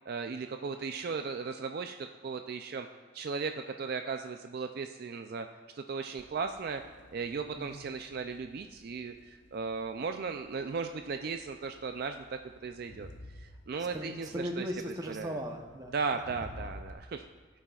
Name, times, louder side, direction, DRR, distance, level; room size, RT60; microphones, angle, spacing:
voice 1, 0.1-2.9 3.1-5.5 5.7-6.8 7.1-13.1 13.3-14.6 15.1-15.4 15.9-17.2, right 5 dB, 50° right, 6 dB, 0.3 m, -36 dB
Crowd, 6.2-16.9, left 1 dB, 60° left, 0.9 m, -53 dB
voice 2, 13.8-16.2, equal, 20° right, 3 dB, 0.7 m, -38 dB
16.0 x 8.8 x 2.4 m, 1.5 s
head